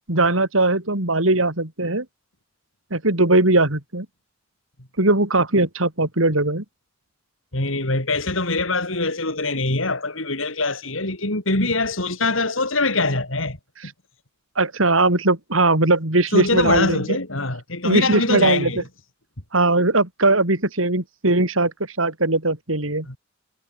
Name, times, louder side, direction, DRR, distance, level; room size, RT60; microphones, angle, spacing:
voice 1, 0.1-2.0 2.9-4.1 5.0-6.6 13.8-13.9 14.6-17.2 17.8-18.7 19.5-23.1, right 2 dB, 85° right, 4.7 m, -20 dB
voice 2, 7.5-13.6 16.3-18.8 23.1-23.2, left 3 dB, 75° left, 6.2 m, -23 dB
head